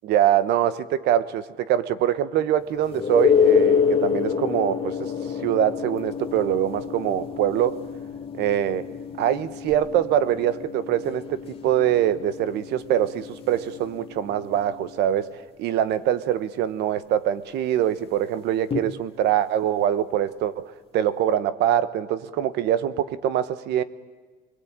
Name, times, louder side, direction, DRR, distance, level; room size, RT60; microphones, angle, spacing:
voice 1, 0.0-5.0 5.4-7.8 8.4-8.8 9.2-15.3 15.6-23.8, right 11 dB, 85° right, 14 dB, 1.2 m, -24 dB
sound 1, 2.9-14.4 18.7-18.8, left 7 dB, 35° left, 2.3 m, -26 dB
25.5 x 22.0 x 8.9 m, 1.4 s
cardioid pair, 110°, 17 cm